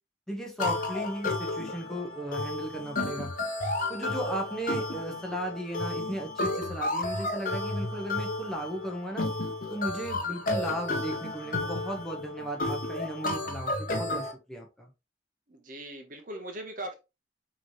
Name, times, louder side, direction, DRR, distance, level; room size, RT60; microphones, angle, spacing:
voice 1, 0.3-3.3 3.9-9.3 9.7-14.9, right 1 dB, ahead, 0 dB, 1.0 m, -36 dB
sound 1, 0.6-14.3, left 2 dB, 50° left, 0.7 m, -32 dB
voice 2, 15.5-17.0, right 1 dB, 50° right, 5 dB, 0.9 m, -40 dB
5.2 x 3.1 x 3.0 m, 0.26 s
head